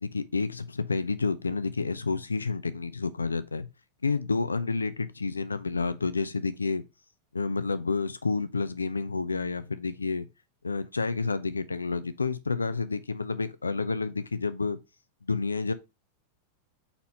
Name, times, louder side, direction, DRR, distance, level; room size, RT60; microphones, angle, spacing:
voice 1, 0.0-3.7 4.0-6.8 7.3-10.3 10.6-14.8 15.3-15.7, left 4 dB, 75° left, 0.6 m, -29 dB
4.3 x 4.2 x 5.4 m
figure-of-eight pair, 90°, 0 cm